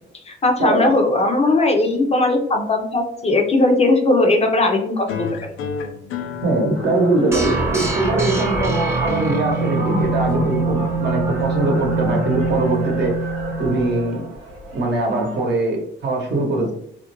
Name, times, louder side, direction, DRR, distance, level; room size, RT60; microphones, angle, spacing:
voice 1, 0.3-5.3, left 2 dB, 30° left, 3 dB, 0.5 m, -18 dB
sound 1, 5.1-10.1, left 6 dB, 90° left, 0.4 m, -33 dB
voice 2, 6.4-13.1 13.6-14.3 14.7-16.7, right 2 dB, 60° right, 1 dB, 0.8 m, -21 dB
sound 2, 6.7-15.4, right 1 dB, 90° right, 0.7 m, -35 dB
sound 3, 7.3-14.2, right 3 dB, 15° right, 0.6 m, -23 dB
2.4 x 2.1 x 2.9 m, 0.68 s
cardioid pair, 90°, 20 cm